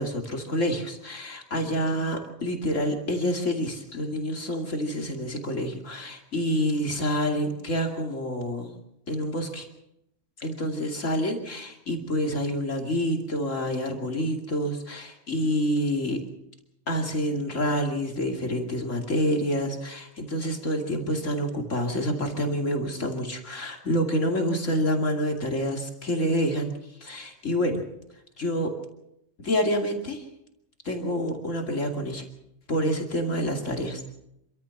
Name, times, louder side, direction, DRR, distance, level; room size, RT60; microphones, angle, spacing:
voice 1, 0.0-8.7 9.1-9.7 10.4-16.2 16.9-26.7 27.0-27.8 28.4-28.7 29.4-30.2 30.8-32.3 32.7-34.0, equal, 65° left, 3 dB, 2.9 m, -27 dB
26.5 x 14.5 x 7.2 m, 0.82 s
omnidirectional pair, 1.4 m